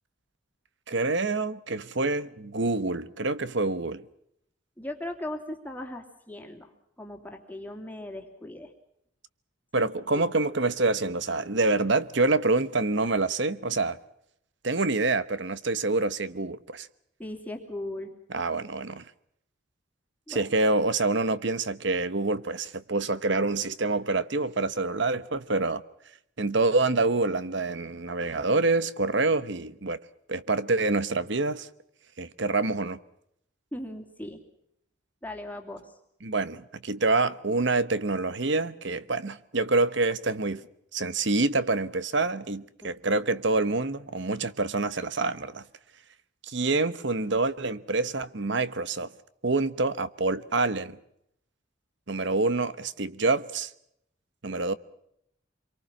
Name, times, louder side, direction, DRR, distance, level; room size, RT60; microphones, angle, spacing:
voice 1, 0.9-4.0 9.7-14.0 14.6-16.9 18.3-19.0 20.3-25.8 26.4-30.0 30.3-31.7 32.2-33.0 36.2-40.7 40.9-45.6 46.4-49.1 49.4-51.0 52.1-53.7 54.4-54.7, right 3 dB, 55° right, 1.1 m, -26 dB
voice 2, 4.8-6.7 7.0-8.7 9.8-9.9 10.1-10.2 17.2-18.1 20.3-20.5 33.7-34.4 35.2-35.9 42.8-43.0, left 1 dB, 10° left, 2.8 m, -38 dB
26.5 x 23.5 x 6.0 m
head